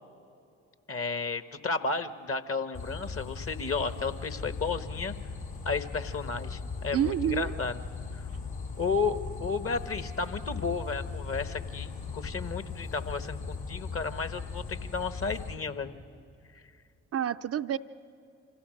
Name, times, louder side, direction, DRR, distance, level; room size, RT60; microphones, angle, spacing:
voice 1, 0.9-5.2 5.6-7.8 8.1-8.2 8.8-15.9, left 4 dB, 40° left, 11 dB, 1.3 m, -33 dB
sound 1, 2.7-15.6, left 4 dB, 65° left, 2.8 m, -38 dB
voice 2, 6.9-7.6 17.1-17.8, right 10 dB, 45° right, 9 dB, 0.5 m, -28 dB
26.5 x 16.0 x 6.5 m, 2.5 s
hypercardioid pair, 45°, 36 cm